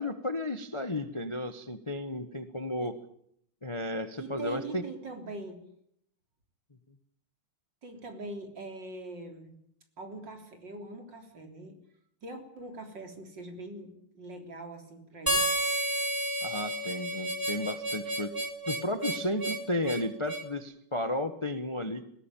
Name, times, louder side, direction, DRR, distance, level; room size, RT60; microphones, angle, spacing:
voice 1, 0.0-3.0 3.6-4.8 16.4-18.3 18.7-22.1, left 1 dB, 20° left, 10 dB, 1.0 m, -33 dB
voice 2, 4.2-5.6 7.8-9.5 10.0-11.8 12.2-15.5, right 2 dB, 55° right, 5 dB, 4.2 m, -42 dB
Harmonica, 15.3-20.5, right 1 dB, 10° right, 3.2 m, -31 dB
20.0 x 18.0 x 9.1 m, 0.71 s
omnidirectional pair, 2.4 m